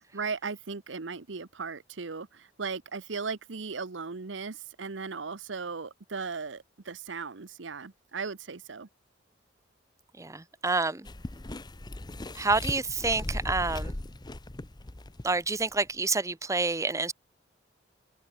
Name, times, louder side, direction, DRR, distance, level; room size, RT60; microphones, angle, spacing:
voice 1, 0.1-8.9, right 5 dB, 70° right, 0.9 m, -37 dB
voice 2, 10.2-11.1 12.4-13.9 15.2-17.1, right 3 dB, 15° right, 0.9 m, -28 dB
sound 1, 11.1-15.6 15.9-16.0, left 1 dB, 25° left, 0.8 m, -38 dB
head